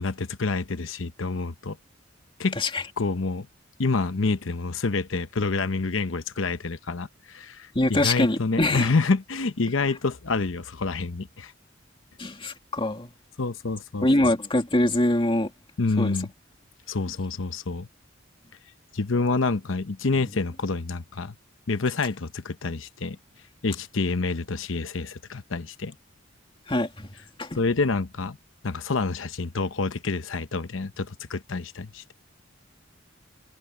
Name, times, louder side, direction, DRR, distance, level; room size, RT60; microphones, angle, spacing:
voice 1, 0.0-1.8 2.4-2.6 3.0-3.5 3.8-11.5 13.4-14.3 15.8-16.3 16.9-17.9 18.9-21.3 21.7-23.2 23.6-25.9 27.6-28.4 28.6-32.1, left 3 dB, 80° left, 0.9 m, -27 dB
voice 2, 7.7-8.9 12.2-13.1 14.0-15.5 16.0-16.1 26.7-27.1 27.4-27.6, left 1 dB, 25° left, 2.5 m, -24 dB
head